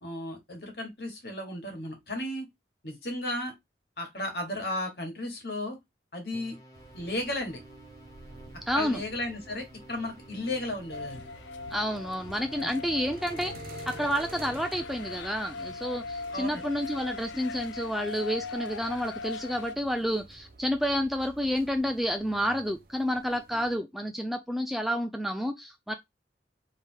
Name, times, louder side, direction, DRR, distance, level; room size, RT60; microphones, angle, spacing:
voice 1, 0.0-2.5 2.8-3.5 4.0-5.8 6.1-6.6 6.9-7.6 8.7-11.2 16.3-16.6, left 1 dB, 60° left, 1.6 m, -34 dB
sound 1, 6.3-13.9, equal, 20° left, 1.2 m, -53 dB
sound 2, 6.7-23.8, right 2 dB, 50° right, 0.7 m, -50 dB
voice 2, 8.7-9.0 11.7-13.5 13.9-25.9, equal, ahead, 0.3 m, -30 dB
sound 3, 10.9-19.7, left 4 dB, 90° left, 0.3 m, -40 dB
3.4 x 2.9 x 4.4 m
head